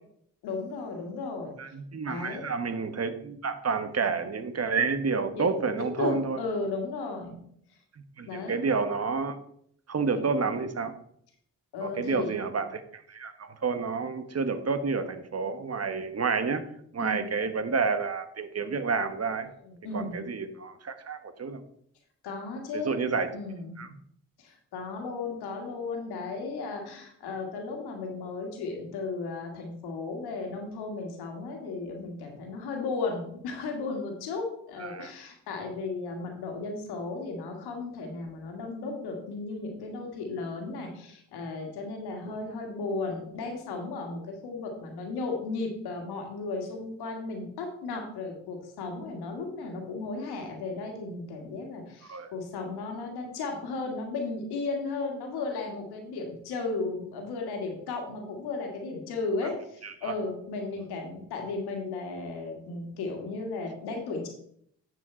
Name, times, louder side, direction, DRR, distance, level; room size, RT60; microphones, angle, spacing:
voice 1, 0.4-1.6 2.0-2.5 5.3-5.6 6.0-7.4 8.3-8.6 11.7-12.3 17.0-17.3 19.6-20.2 22.2-22.9 23.3-23.8 24.4-64.3, left 3 dB, 80° left, 2 dB, 1.8 m, -35 dB
voice 2, 1.6-6.4 8.2-9.4 9.9-10.9 11.8-16.6 16.9-19.5 19.9-21.6 22.7-23.3 23.8-23.9 34.8-35.1 42.3-42.4 52.1-52.3 59.8-60.1, right 5 dB, 40° right, 10 dB, 1.2 m, -29 dB
9.7 x 5.0 x 4.4 m, 0.68 s
hypercardioid pair, 40°, 38 cm